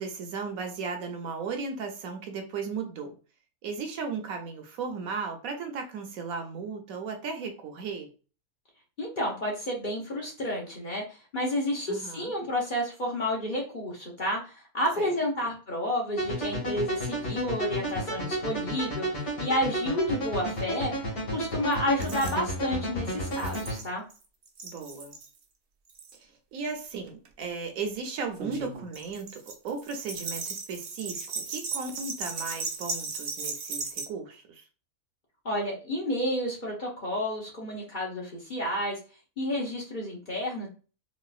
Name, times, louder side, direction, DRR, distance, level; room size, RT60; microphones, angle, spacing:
voice 1, 0.0-3.1 3.6-8.1 11.9-12.3 15.0-15.1 22.0-22.3 24.6-25.2 26.1-34.6, right 5 dB, 75° right, 4 dB, 1.1 m, -36 dB
voice 2, 9.0-11.0 11.3-24.0 35.4-39.0 39.4-40.7, left 1 dB, 40° left, -2 dB, 0.9 m, -30 dB
sound 1, 16.2-23.8, right 1 dB, 60° left, 1.9 m, -32 dB
sound 2, 21.7-21.8 22.0-22.4 23.3-24.2 24.5-25.3 25.9-26.2 27.1-27.3 28.3-34.1, right 4 dB, 55° right, 0.6 m, -36 dB
4.0 x 2.4 x 2.4 m, 0.35 s
omnidirectional pair, 1.6 m